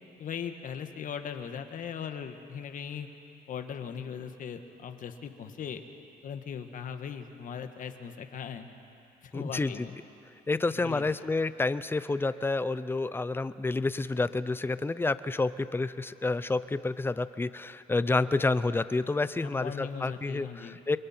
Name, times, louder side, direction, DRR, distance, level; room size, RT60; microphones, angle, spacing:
voice 1, 0.2-3.1 3.5-5.8 6.2-8.7 9.2-9.9 10.8-11.1 19.4-20.8, left 7 dB, 50° left, 7 dB, 1.6 m, -39 dB
voice 2, 9.3-9.9 10.5-21.0, left 3 dB, 15° left, 14 dB, 0.6 m, -29 dB
29.5 x 22.5 x 4.4 m, 2.6 s
cardioid pair, 110°, 17 cm